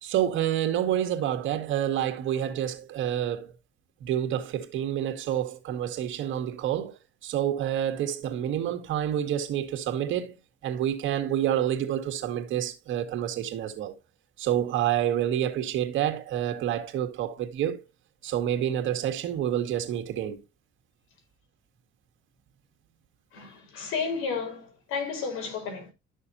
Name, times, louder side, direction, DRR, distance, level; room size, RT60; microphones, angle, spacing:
voice 1, 0.0-3.5 4.0-10.3 10.6-14.0 14.4-17.8 18.2-20.4, right 10 dB, 70° right, 2.0 m, -28 dB
voice 2, 23.3-25.9, left 5 dB, 80° left, 4.4 m, -32 dB
12.5 x 6.6 x 2.7 m
cardioid pair, 105°, 21 cm